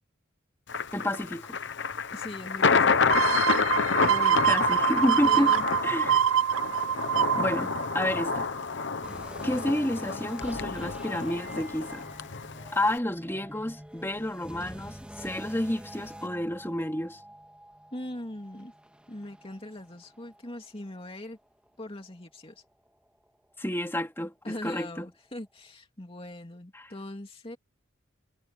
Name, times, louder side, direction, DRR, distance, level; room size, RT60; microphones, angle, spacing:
Thunder, 0.7-13.0, left 5 dB, 60° left, 0.9 m, -29 dB
voice 1, 0.9-1.6 4.1-5.5 5.8-6.2 7.4-8.4 9.4-12.0 12.7-17.2 23.6-25.0 26.7-26.9, left 1 dB, 10° left, 3.0 m, -30 dB
voice 2, 2.1-3.3 5.2-5.7 17.9-18.7 19.1-21.4 21.8-22.6 24.4-27.6, left 1 dB, 30° left, 2.7 m, -41 dB
sound 1, 3.1-8.6 9.0-9.1, right 9 dB, 90° right, 0.7 m, -25 dB
sound 2, 9.0-20.5 20.8-21.0 21.7-21.8, equal, 5° right, 2.7 m, -46 dB
head